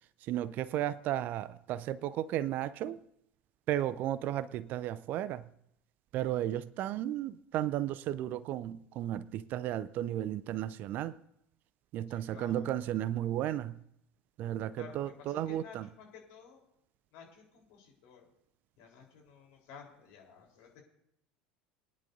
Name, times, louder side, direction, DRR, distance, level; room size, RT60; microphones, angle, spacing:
voice 1, 0.2-3.0 3.7-5.4 6.1-11.1 11.9-13.8 14.4-15.9, right 12 dB, 45° right, 0.5 m, -34 dB
voice 2, 12.1-12.9 14.8-16.6 17.1-18.3 18.8-20.8, left 6 dB, 55° left, 3.8 m, -53 dB
23.5 x 10.5 x 2.7 m
figure-of-eight pair, 70°, 4 cm